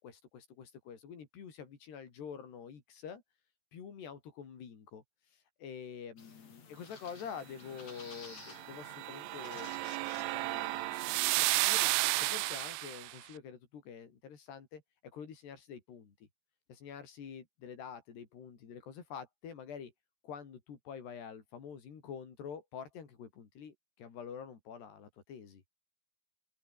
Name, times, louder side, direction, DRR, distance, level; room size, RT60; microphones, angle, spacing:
voice 1, 0.0-3.2 3.7-5.0 5.6-9.7 10.3-10.9 11.4-16.3 16.7-19.9 20.2-25.6, left 7 dB, 85° left, 6.1 m, -47 dB
sound 1, 6.2-11.3, left 6 dB, 45° left, 4.4 m, -54 dB
sound 2, 8.5-13.1, right 24 dB, 90° right, 2.6 m, -32 dB
open air
omnidirectional pair, 4.6 m